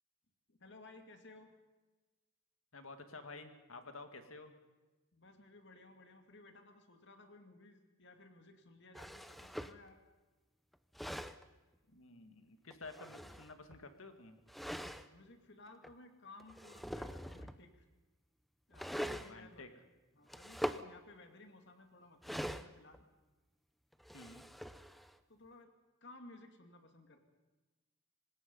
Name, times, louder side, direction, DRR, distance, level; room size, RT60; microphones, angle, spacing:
voice 1, 0.5-1.5 5.1-10.0 14.9-17.8 18.7-19.6 20.1-23.0 25.3-25.7 26.0-27.2, left 2 dB, 55° left, 6 dB, 2.6 m, -58 dB
voice 2, 2.7-4.5 11.9-14.4 19.2-19.7 24.1-24.5, left 3 dB, 70° left, 8 dB, 2.2 m, -51 dB
sound 1, 8.9-9.8 10.7-11.4 12.7-13.8 14.5-15.1 15.8-15.9 16.4-17.6 18.7-19.3 20.3-20.9 22.2-23.0 23.9-25.2, equal, ahead, 0.6 m, -43 dB
25.5 x 20.0 x 5.5 m, 1.2 s
head